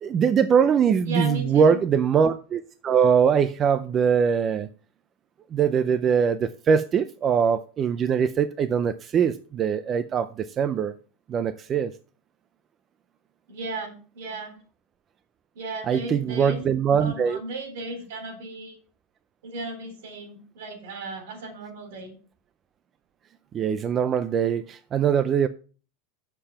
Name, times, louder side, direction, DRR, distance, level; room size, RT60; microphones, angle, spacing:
voice 1, 0.0-4.7 5.5-10.9 11.3-11.9 15.9-17.4 23.5-25.5, right 7 dB, 20° right, 0.4 m, -22 dB
voice 2, 1.1-1.8 13.5-14.6 15.5-16.6 17.0-18.8 19.4-22.2, right 2 dB, 70° right, 3.9 m, -35 dB
7.5 x 6.8 x 5.6 m
supercardioid pair, 170°, 0 cm